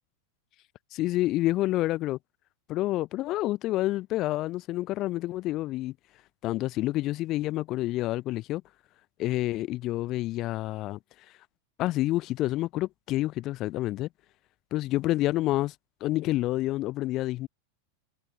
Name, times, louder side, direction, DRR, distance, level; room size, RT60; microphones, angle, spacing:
voice 1, 0.9-2.2 2.7-5.9 6.4-8.6 9.2-11.0 11.8-14.1 14.7-15.7 16.0-17.5, left 16 dB, 35° left, 3.3 m, -28 dB
figure-of-eight pair, 90°, 0 cm